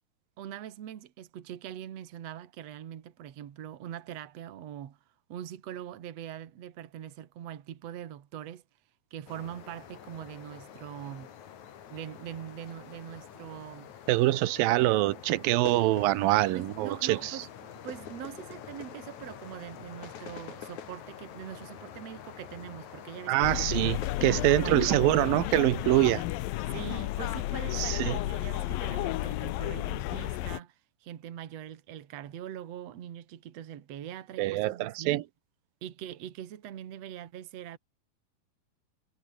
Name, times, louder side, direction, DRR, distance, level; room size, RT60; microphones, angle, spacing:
voice 1, 0.4-5.0 5.3-8.6 9.1-11.3 11.9-13.9 16.5-23.7 24.5-25.6 26.7-35.2 35.8-37.8, right 10 dB, 50° right, 2.4 m, -43 dB
sound 1, 9.3-24.8, left 9 dB, 55° left, 3.1 m, -46 dB
voice 2, 14.1-17.4 23.3-26.2 27.7-28.2 34.4-35.2, right 16 dB, 75° right, 2.7 m, -25 dB
sound 2, 23.4-30.6, left 16 dB, 75° left, 2.6 m, -32 dB
omnidirectional pair, 4.3 m